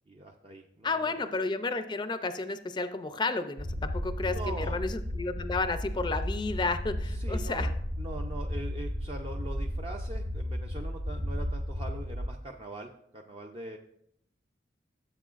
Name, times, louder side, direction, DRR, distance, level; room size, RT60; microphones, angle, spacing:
voice 1, 0.1-1.2 4.2-4.8 7.1-7.7 8.0-13.8, right 2 dB, 30° right, 2 dB, 0.5 m, -42 dB
voice 2, 0.8-7.7, left 3 dB, 25° left, 10 dB, 0.4 m, -32 dB
sound 1, 3.6-12.3, equal, 85° right, 1.6 m, -34 dB
14.0 x 7.6 x 2.5 m, 0.72 s
head